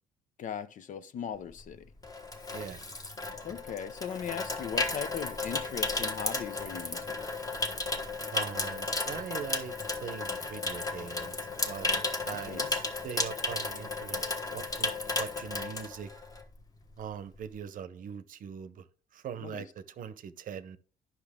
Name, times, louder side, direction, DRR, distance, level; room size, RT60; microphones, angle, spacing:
voice 1, 0.4-1.9 3.4-7.2 12.5-12.7 19.4-19.7, left 8 dB, 50° left, 0.7 m, -39 dB
Water tap faucet / Sink (filling or washing), 1.5-16.6 16.8-17.1, left 2 dB, 20° left, 1.3 m, -34 dB
voice 2, 2.5-2.8 8.3-9.7 10.0-14.2 14.5-16.1 17.0-18.8 19.1-20.8, right 8 dB, 55° right, 0.8 m, -41 dB
9.9 x 5.9 x 3.6 m
cardioid pair, 110°, 17 cm